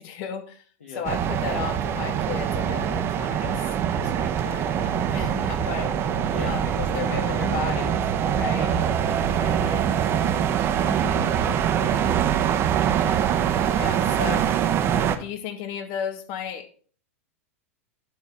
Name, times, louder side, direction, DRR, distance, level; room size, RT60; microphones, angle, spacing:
voice 1, 0.0-0.6 0.9-3.7 4.0-6.1 6.4-7.9 8.3-8.7 9.4-9.9 10.8-11.4 12.9-14.7 15.1-16.7, left 7 dB, 50° left, 8 dB, 1.3 m, -35 dB
sound 1, 1.0-15.2, right 9 dB, 35° right, 0.8 m, -24 dB
sound 2, 1.1-9.9, equal, 10° left, 1.5 m, -39 dB
voice 2, 6.2-6.9 7.2-7.6 8.6-12.6, left 2 dB, 75° left, 2 dB, 1.5 m, -42 dB
10.0 x 4.1 x 4.6 m, 0.43 s
figure-of-eight pair, 90°, 8 cm